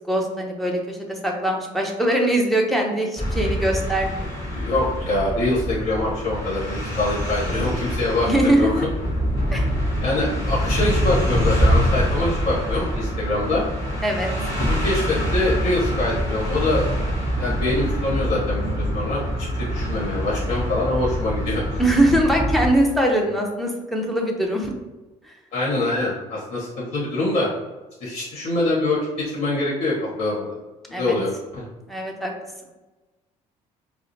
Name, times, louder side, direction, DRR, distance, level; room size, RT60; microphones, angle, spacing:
voice 1, 0.1-4.3 8.2-8.9 9.5-9.7 14.0-14.3 21.8-24.7 30.9-31.2 31.9-32.3, right 1 dB, ahead, 0 dB, 0.6 m, -22 dB
sound 1, 3.2-22.7, equal, 25° left, 1.1 m, -25 dB
voice 2, 4.5-8.7 10.0-13.6 14.7-16.8 17.4-19.2 19.5-21.8 25.5-27.5 28.0-30.6 30.9-31.7, left 2 dB, 55° left, -6 dB, 1.3 m, -24 dB
4.6 x 2.0 x 2.7 m, 1.1 s
cardioid pair, 120°, 13 cm